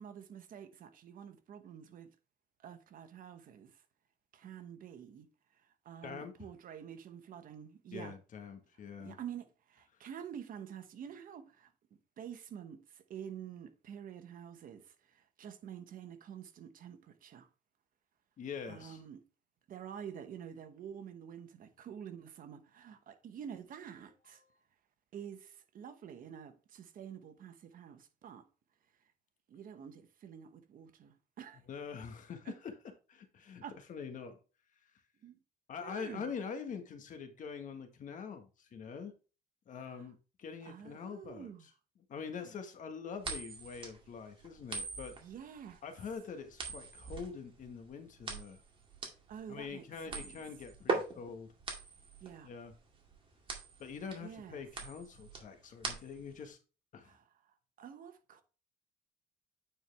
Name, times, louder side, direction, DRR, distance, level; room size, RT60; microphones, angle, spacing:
voice 1, 0.0-2.1 2.6-3.8 4.3-5.3 5.6-8.1 9.0-11.7 12.2-17.5 18.7-19.2 19.7-24.4 25.1-28.5 29.5-31.6 32.5-32.6 33.6-33.7 35.2-35.4 35.8-36.3 39.8-40.1 40.6-41.7 45.2-45.8 49.3-50.4 52.2-52.5 54.2-54.6 57.0-57.2 57.8-58.4, right 8 dB, 55° right, 1.1 m, -48 dB
voice 2, 6.0-6.5 7.9-9.2 18.4-19.0 24.3-24.6 31.7-32.7 33.1-33.6 33.9-34.4 35.7-39.1 39.7-41.5 42.1-45.1 45.8-48.6 49.5-51.5 52.4-52.7 53.8-56.6 56.9-57.1, left 6 dB, 50° left, 1.5 m, -44 dB
sound 1, 43.2-56.4, right 3 dB, 30° right, 2.1 m, -41 dB
9.1 x 4.5 x 3.5 m
cardioid pair, 110°, 17 cm